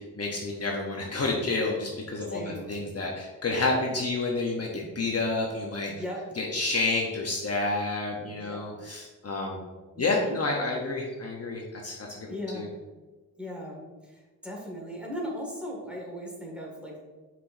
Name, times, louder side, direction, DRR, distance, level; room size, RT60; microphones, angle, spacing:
voice 1, 0.2-5.9 6.4-9.6 10.0-12.3 12.5-12.7, left 3 dB, 40° left, -1 dB, 1.0 m, -29 dB
voice 2, 2.3-2.7 5.9-6.2 8.3-8.9 9.9-10.4 12.3-12.7 13.4-17.0, equal, 5° right, -3 dB, 2.1 m, -38 dB
7.2 x 5.9 x 2.7 m, 1.2 s
cardioid pair, 90°, 36 cm